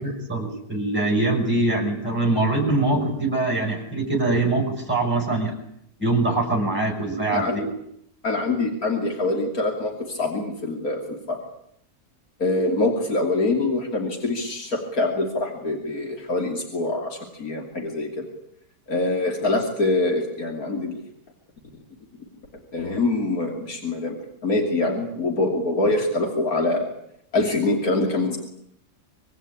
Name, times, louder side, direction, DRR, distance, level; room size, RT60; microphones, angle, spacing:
voice 1, 0.0-5.6 6.0-7.7, right 2 dB, 5° right, 0 dB, 6.2 m, -23 dB
voice 2, 8.2-11.4 12.4-18.2 18.9-21.0 22.7-24.2 24.4-26.9 27.3-28.4, left 2 dB, 85° left, 1 dB, 3.4 m, -24 dB
25.0 x 23.5 x 8.7 m, 0.75 s
omnidirectional pair, 1.5 m